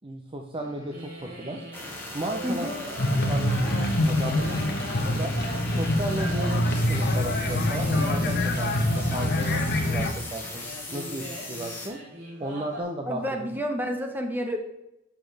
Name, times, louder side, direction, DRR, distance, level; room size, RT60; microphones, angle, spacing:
voice 1, 0.0-1.7 2.1-5.3 5.8-8.7 9.0-10.6 10.9-12.0 12.4-13.2, right 1 dB, 25° right, 2 dB, 0.8 m, -35 dB
sound 1, 0.5-12.8, equal, 65° right, 3.6 m, -41 dB
sound 2, 1.7-11.9, left 2 dB, 10° left, 2.4 m, -39 dB
voice 2, 2.4-2.7 13.0-14.6, equal, 10° right, 4 dB, 1.4 m, -29 dB
sound 3, 3.0-10.1, left 1 dB, 55° left, 1.2 m, -25 dB
11.5 x 6.1 x 3.4 m, 0.88 s
head